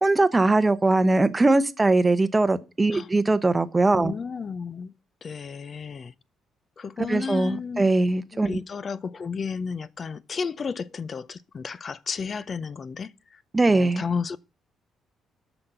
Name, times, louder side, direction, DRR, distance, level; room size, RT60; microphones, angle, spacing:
voice 1, 0.0-4.1 7.1-8.6 13.5-14.0, right 2 dB, 20° right, 0.7 m, -21 dB
voice 2, 4.0-4.9 5.2-6.1 6.8-7.9 8.3-13.4 13.7-14.4, left 5 dB, 45° left, 0.5 m, -32 dB
7.4 x 6.1 x 6.7 m
cardioid pair, 90°, 0 cm